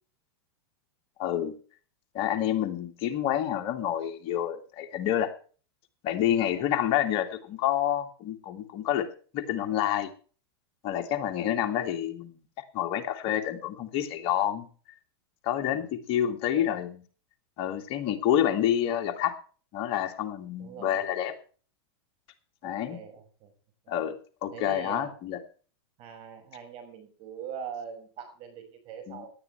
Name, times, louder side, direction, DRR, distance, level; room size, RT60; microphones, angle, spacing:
voice 1, 1.2-1.5 2.1-5.3 6.0-9.1 9.3-10.1 10.8-12.4 12.7-14.7 15.4-17.0 17.6-19.3 19.7-21.3 22.6-23.0 23.9-24.1 24.4-25.4 29.1-29.3, left 11 dB, 45° left, 5 dB, 2.2 m, -28 dB
voice 2, 16.2-16.8 20.6-21.0 22.6-23.5 24.5-25.1 26.0-29.3, right 7 dB, 40° right, 7 dB, 6.1 m, -42 dB
18.0 x 11.5 x 3.3 m, 0.40 s
supercardioid pair, 130°, 13 cm